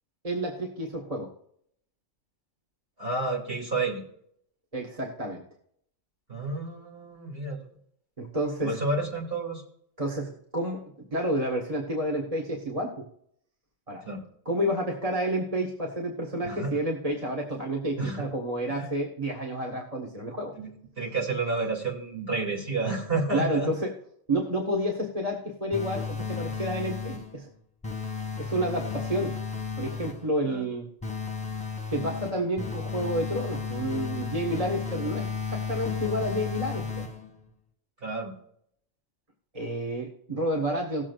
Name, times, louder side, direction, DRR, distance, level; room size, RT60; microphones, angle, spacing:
voice 1, 0.2-1.3 4.7-5.4 8.2-8.8 10.0-10.8 11.1-13.0 13.9-14.0 14.4-20.5 23.3-23.9 24.3-27.5 28.4-29.3 29.8-30.9 31.9-37.1 39.5-41.0, right 1 dB, 30° right, 0 dB, 1.5 m, -30 dB
voice 2, 3.0-4.0 6.3-7.6 8.6-9.6 14.1-14.2 16.4-16.8 18.0-18.3 18.7-18.9 20.6-23.7 30.4-30.6 38.0-38.3, right 3 dB, 45° right, -2 dB, 2.8 m, -30 dB
sound 1, 25.7-27.4 27.8-30.3 31.0-37.4, left 5 dB, 5° left, 1.8 m, -33 dB
18.5 x 7.3 x 2.5 m, 0.69 s
omnidirectional pair, 1.4 m